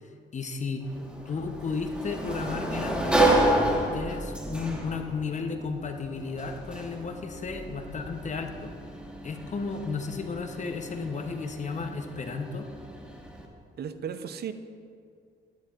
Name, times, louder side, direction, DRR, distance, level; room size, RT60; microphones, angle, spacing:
voice 1, 0.3-0.8 1.3-3.4 3.9-8.7 9.2-12.7, left 4 dB, 35° left, 5 dB, 0.8 m, -33 dB
Sliding door, 0.8-13.5, right 1 dB, 5° right, 1.3 m, -31 dB
voice 2, 13.8-14.5, right 8 dB, 55° right, 10 dB, 0.6 m, -35 dB
11.0 x 10.0 x 2.4 m, 2.2 s
cardioid pair, 90°, 20 cm